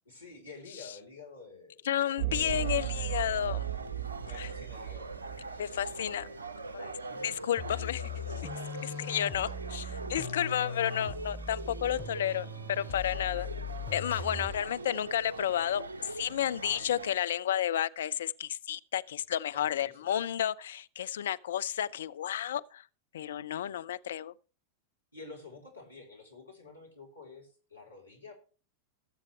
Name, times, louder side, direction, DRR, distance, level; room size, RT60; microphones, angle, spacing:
voice 1, 0.1-2.6 4.2-5.1 5.6-6.4 7.1-7.4 8.7-9.8 14.3-14.8 16.6-16.9 19.5-20.2 25.1-28.3, left 3 dB, 85° left, 3.5 m, -51 dB
voice 2, 1.9-3.6 4.3-4.5 5.6-6.3 6.7-6.9 7.2-8.1 8.8-9.8 10.1-13.5 13.9-22.8 23.1-24.3, left 10 dB, 60° left, 0.5 m, -32 dB
sound 1, 2.2-6.5, right 14 dB, 40° right, 4.9 m, -36 dB
sound 2, 2.4-17.2, right 3 dB, 75° right, 0.8 m, -43 dB
sound 3, 7.6-14.7, left 4 dB, 5° right, 3.4 m, -40 dB
20.5 x 7.4 x 3.2 m
figure-of-eight pair, 90°, 0 cm